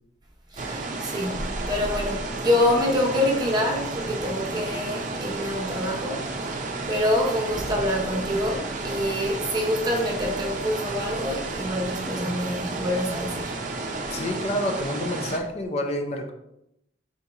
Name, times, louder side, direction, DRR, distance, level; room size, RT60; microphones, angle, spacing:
voice 1, 0.5-13.6, left 1 dB, 25° right, 0.8 m, -26 dB
sound 1, 0.6-15.4, right 3 dB, 45° right, 0.5 m, -32 dB
voice 2, 14.1-16.3, left 1 dB, 35° left, 0.5 m, -28 dB
3.8 x 2.7 x 4.6 m
head